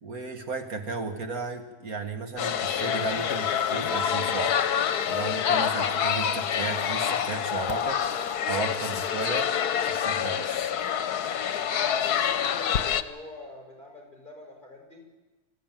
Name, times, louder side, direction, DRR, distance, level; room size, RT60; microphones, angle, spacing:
voice 1, 0.0-4.6 5.1-8.2 8.5-9.6 9.8-10.7, right 4 dB, 65° right, 5 dB, 2.0 m, -34 dB
sound 1, 2.4-13.0, left 8 dB, 85° left, 1.4 m, -27 dB
voice 2, 11.7-15.1, left 2 dB, 30° left, 0 dB, 6.0 m, -44 dB
25.5 x 15.0 x 9.1 m, 1.2 s
omnidirectional pair, 1.6 m